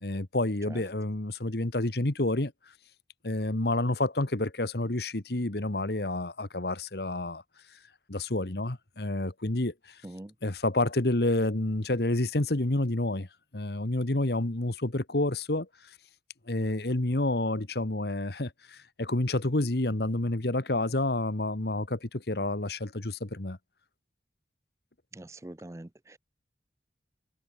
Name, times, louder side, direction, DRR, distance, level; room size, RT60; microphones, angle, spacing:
voice 1, 0.0-2.5 3.2-7.4 8.1-9.7 10.4-13.3 13.5-15.7 16.5-23.6, left 2 dB, 65° left, 1.6 m, -29 dB
voice 2, 25.1-26.2, right 1 dB, 15° right, 0.5 m, -44 dB
head